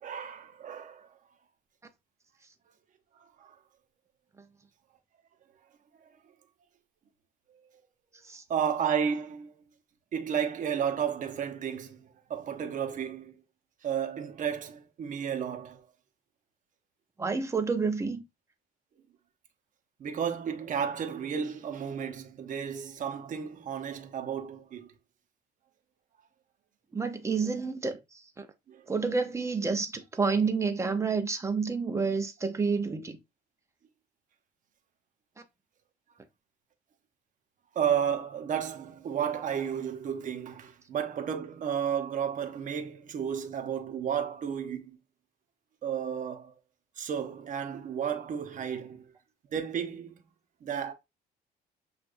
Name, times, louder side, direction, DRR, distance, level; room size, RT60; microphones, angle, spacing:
voice 1, 0.0-1.1 3.4-3.5 8.5-9.5 10.1-13.3 13.8-15.8 20.0-24.9 28.7-28.8 37.7-45.0 45.8-46.5 47.0-49.0 49.5-50.2 50.6-50.9, right 8 dB, 50° right, 1.0 m, -32 dB
voice 2, 17.2-18.2 26.9-28.0 28.4-28.5 28.9-33.2, right 4 dB, 15° right, 0.8 m, -29 dB
6.7 x 2.6 x 2.6 m
cardioid pair, 110°, 17 cm